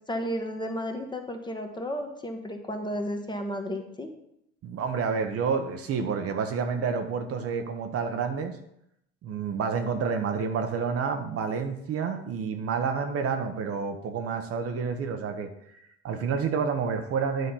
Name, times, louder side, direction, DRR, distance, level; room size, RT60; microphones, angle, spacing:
voice 1, 0.1-4.1, equal, 15° left, 4 dB, 1.1 m, -33 dB
voice 2, 4.6-8.6 9.2-15.5 16.0-17.5, right 6 dB, 50° right, 6 dB, 0.9 m, -29 dB
9.2 x 3.2 x 5.5 m, 0.77 s
hypercardioid pair, 75°, 30 cm